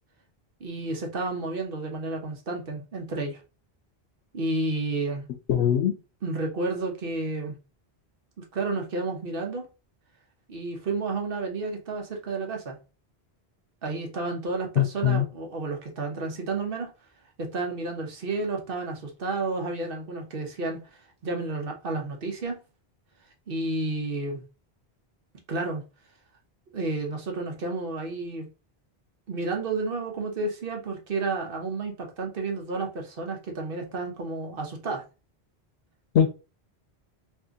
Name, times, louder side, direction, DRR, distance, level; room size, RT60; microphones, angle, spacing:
voice 1, 0.6-3.4 4.3-5.2 6.2-7.6 8.4-9.6 10.5-12.8 13.8-16.9 17.4-20.8 21.2-22.6 23.5-24.4 25.5-25.8 26.7-28.5 29.3-35.0, right 3 dB, 60° right, 1.0 m, -31 dB
voice 2, 5.5-6.0 14.8-15.3 36.1-36.3, left 9 dB, 90° left, 0.9 m, -21 dB
2.7 x 2.6 x 3.6 m
omnidirectional pair, 1.1 m